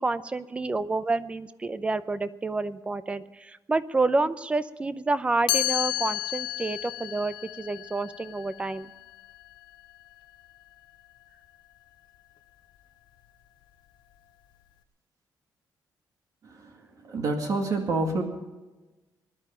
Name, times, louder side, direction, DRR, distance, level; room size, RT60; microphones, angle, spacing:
voice 1, 0.0-8.9, right 3 dB, 15° right, 14 dB, 0.6 m, -29 dB
Chime, 5.5-11.3, left 15 dB, 85° left, 0.7 m, -33 dB
voice 2, 17.0-18.2, right 3 dB, 50° right, 3 dB, 2.2 m, -27 dB
20.0 x 11.5 x 5.7 m, 1.2 s
cardioid pair, 160°, 7 cm